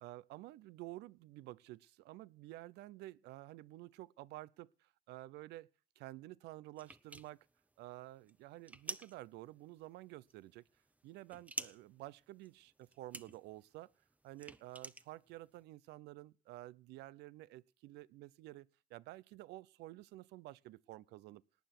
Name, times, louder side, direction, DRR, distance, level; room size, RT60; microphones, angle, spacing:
voice 1, 0.0-5.7 6.0-7.5 7.8-10.7 11.0-13.9 14.2-21.4, right 17 dB, 85° right, 0.6 m, -51 dB
sound 1, 6.8-15.6, right 2 dB, 10° right, 0.9 m, -50 dB
18.5 x 9.4 x 6.0 m
cardioid pair, 110°, 17 cm